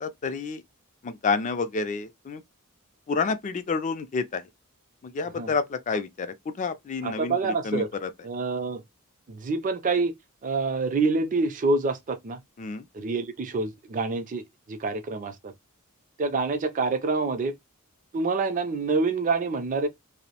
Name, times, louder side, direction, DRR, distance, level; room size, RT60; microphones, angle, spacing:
voice 1, 0.0-0.6 1.0-2.4 3.1-4.4 5.0-7.4 7.6-8.1 12.6-12.9, left 4 dB, 35° left, 0.3 m, -29 dB
voice 2, 7.0-7.9 8.2-8.8 9.3-10.1 10.4-12.4 12.9-15.5 16.2-17.5 18.1-19.9, right 3 dB, 35° right, 0.4 m, -27 dB
2.5 x 2.0 x 2.7 m
head